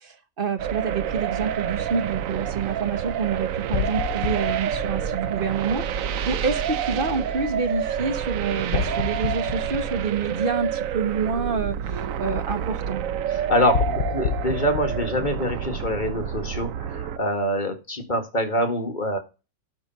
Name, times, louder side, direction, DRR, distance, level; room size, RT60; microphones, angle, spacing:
voice 1, 0.0-13.0, right 5 dB, 40° right, 10 dB, 1.1 m, -28 dB
sound 1, 0.6-17.2, right 9 dB, 70° right, 1.0 m, -28 dB
sound 2, 3.7-5.8 8.7-10.8 13.7-16.3, left 8 dB, 85° left, 1.3 m, -30 dB
voice 2, 13.3-19.2, left 1 dB, 30° left, 5 dB, 2.0 m, -25 dB
12.0 x 4.5 x 5.5 m, 0.30 s
omnidirectional pair, 1.6 m